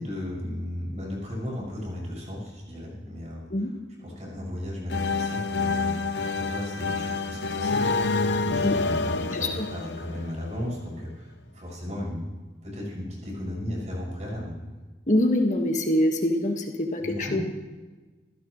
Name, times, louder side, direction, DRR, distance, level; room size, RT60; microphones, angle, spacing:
voice 1, 0.0-3.7 4.0-7.8 8.1-12.2 12.6-14.6 17.0-17.4, left 1 dB, 40° right, -3 dB, 6.6 m, -35 dB
sound 1, 4.9-10.6, left 3 dB, 80° left, 0.9 m, -28 dB
voice 2, 9.3-9.6 15.1-17.4, left 1 dB, 45° left, 2 dB, 1.7 m, -24 dB
26.0 x 15.5 x 3.2 m, 1.3 s
head